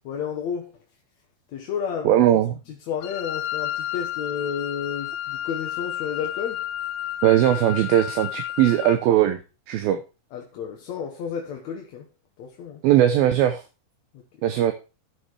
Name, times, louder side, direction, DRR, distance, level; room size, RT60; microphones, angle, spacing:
voice 1, 0.0-0.8 1.5-6.7 10.3-12.1 12.4-12.8 14.1-14.2, left 7 dB, 60° left, 2.1 m, -32 dB
voice 2, 2.1-2.5 7.2-9.4 9.7-10.0 12.8-13.6 14.4-14.7, right 12 dB, 75° right, 2.7 m, -19 dB
Wind instrument woodwind instrument, 3.0-9.0, left 12 dB, 80° left, 2.6 m, -31 dB
12.5 x 6.1 x 4.7 m
omnidirectional pair, 4.4 m